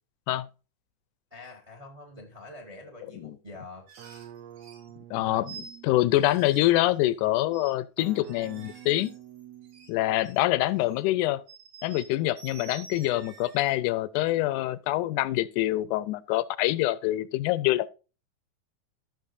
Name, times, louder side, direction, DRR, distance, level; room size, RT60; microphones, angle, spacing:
voice 1, 1.3-3.9, left 2 dB, 30° right, 0.7 m, -45 dB
sound 1, 3.9-4.9 5.4-5.8 6.2-7.2 7.5-7.7 8.0-9.9 10.2-11.1 11.5-13.7, right 6 dB, 55° right, 3.6 m, -49 dB
sound 2, 4.0-6.4 8.0-10.3, right 12 dB, 75° right, 1.6 m, -48 dB
voice 2, 5.1-9.1 9.9-11.4 11.8-17.9, left 16 dB, 80° left, 2.0 m, -25 dB
15.0 x 6.2 x 2.6 m
omnidirectional pair, 3.6 m